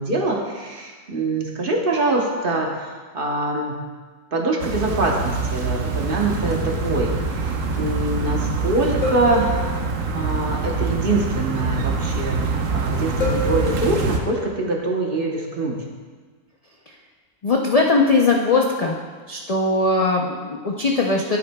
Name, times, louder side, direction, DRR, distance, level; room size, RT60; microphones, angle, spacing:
voice 1, 0.0-3.8 4.3-9.7 10.1-15.8, right 2 dB, 45° right, 0 dB, 1.1 m, -24 dB
sound 1, 4.6-14.2, right 4 dB, 70° right, 1.1 m, -25 dB
sound 2, 9.0-10.2 13.2-14.3, left 1 dB, 90° left, 1.7 m, -28 dB
voice 2, 17.4-19.0 19.3-21.4, left 3 dB, 70° left, 0 dB, 0.3 m, -20 dB
10.5 x 8.1 x 2.2 m, 1.5 s
omnidirectional pair, 1.4 m